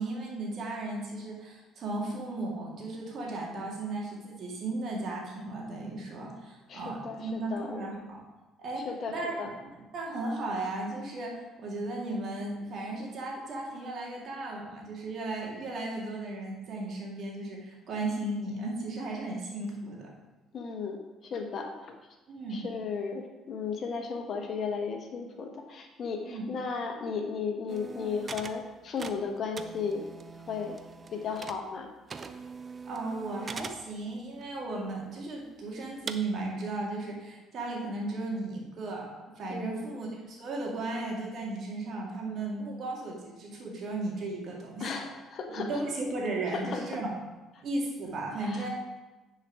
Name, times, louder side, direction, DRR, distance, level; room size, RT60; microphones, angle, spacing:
voice 1, 0.0-8.2 8.6-9.4 9.7-20.1 22.3-22.7 26.3-26.5 32.9-44.9 45.5-47.1 47.6-48.7, right 2 dB, 55° right, -1 dB, 2.2 m, -35 dB
voice 2, 6.7-7.9 8.8-9.5 20.5-21.9 22.5-30.1 30.5-30.8 31.1-31.9 39.5-39.8 44.8-45.8 46.5-46.9 48.4-48.7, left 5 dB, 50° left, 4 dB, 1.2 m, -35 dB
sound 1, 27.7-28.6 28.9-31.8 32.1-33.8 34.4-34.5 35.1-35.2 36.1-36.2, right 5 dB, 40° right, 0.6 m, -42 dB
9.8 x 4.7 x 4.7 m, 1.1 s
hypercardioid pair, 55°, 0 cm